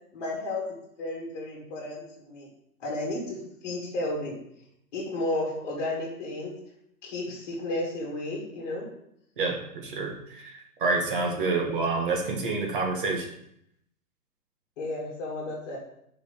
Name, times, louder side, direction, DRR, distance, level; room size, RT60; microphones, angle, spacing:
voice 1, 0.1-0.6 1.0-2.5 2.8-4.4 4.9-6.5 7.0-8.9 14.8-15.8, left 2 dB, 25° left, -4 dB, 2.2 m, -32 dB
voice 2, 9.4-13.3, right 3 dB, 35° right, 2 dB, 1.4 m, -28 dB
6.0 x 5.2 x 6.8 m, 0.74 s
hypercardioid pair, 180°, 46 cm